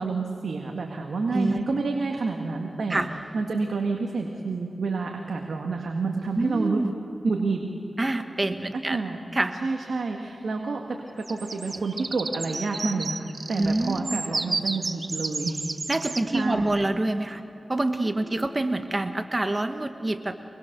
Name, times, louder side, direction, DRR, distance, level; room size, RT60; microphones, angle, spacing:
voice 1, 0.0-3.0 3.3-6.8 7.2-7.6 8.7-9.2 9.6-16.8 18.0-18.4, right 4 dB, 80° right, 2 dB, 1.8 m, -29 dB
voice 2, 6.3-6.9 8.0-9.0 9.3-9.5 13.6-14.2 15.9-17.4 17.7-20.4, right 2 dB, 35° right, 8 dB, 1.4 m, -26 dB
sound 1, 11.2-16.2, right 3 dB, 55° right, 1.0 m, -32 dB
25.0 x 21.5 x 6.8 m, 2.8 s
cardioid pair, 45°, 0 cm